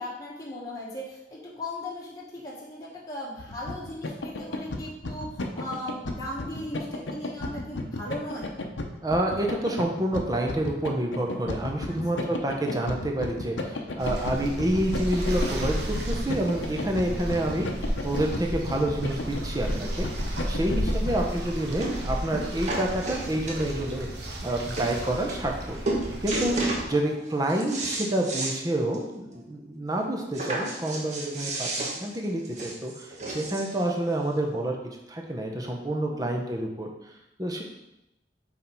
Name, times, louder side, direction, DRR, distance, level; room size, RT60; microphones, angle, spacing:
voice 1, 0.0-8.5 11.9-12.4 17.1-17.5 20.9-21.0 26.9-27.2 36.1-36.4, left 1 dB, 20° left, -6 dB, 1.2 m, -38 dB
sound 1, 3.4-21.2, left 2 dB, 90° left, 0.7 m, -34 dB
voice 2, 9.0-17.7 18.0-20.1 20.5-24.1 24.4-25.8 26.2-26.6 26.9-34.8 35.1-36.9 37.4-37.6, right 1 dB, 20° right, 1 dB, 0.8 m, -28 dB
sound 2, 14.0-26.8, equal, 65° right, 1.2 m, -33 dB
sound 3, 21.0-21.1 21.8-22.0 22.3-23.9 24.5-24.6 24.8-24.9 25.3-25.6 25.8-26.9 27.3-28.6 28.9-29.0 29.3-29.4 30.3-33.8 34.6-34.7, right 2 dB, 40° right, 1.1 m, -32 dB
5.8 x 4.1 x 4.4 m, 0.89 s
head